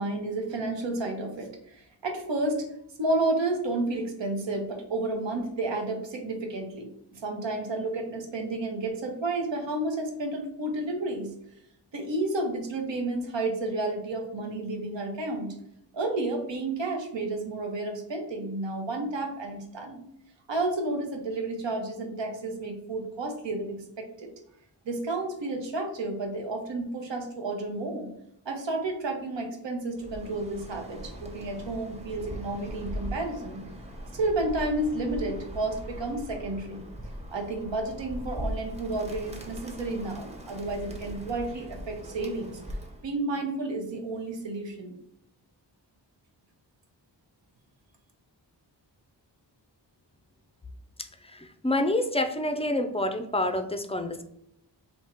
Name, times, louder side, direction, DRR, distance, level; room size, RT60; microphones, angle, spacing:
voice 1, 0.0-2.7 3.0-11.3 11.9-15.5 15.9-20.0 20.5-24.3 24.8-28.1 28.4-33.6 34.1-36.8 37.3-42.6 43.0-45.0, right 2 dB, 90° right, 3 dB, 1.0 m, -31 dB
Bird, 29.9-43.1, equal, 15° right, 0.7 m, -40 dB
voice 2, 51.2-54.2, left 1 dB, 15° left, 8 dB, 0.3 m, -28 dB
3.5 x 2.8 x 4.3 m, 0.79 s
wide cardioid pair, 135°, 43 cm